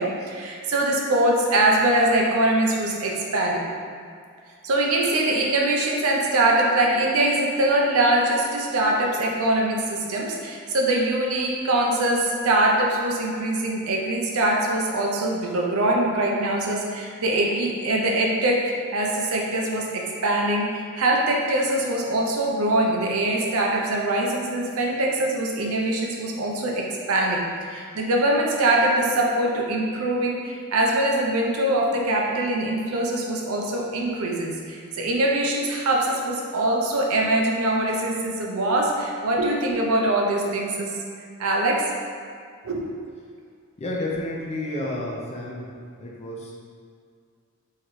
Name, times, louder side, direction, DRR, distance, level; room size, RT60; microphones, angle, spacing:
voice 1, 0.0-3.6 4.6-41.0 41.4-41.9 42.6-42.9, right 1 dB, 70° right, -1 dB, 0.6 m, -23 dB
voice 2, 43.8-45.7 46.0-46.5, left 1 dB, 30° left, -3 dB, 0.5 m, -30 dB
3.8 x 3.0 x 3.1 m, 2.2 s
head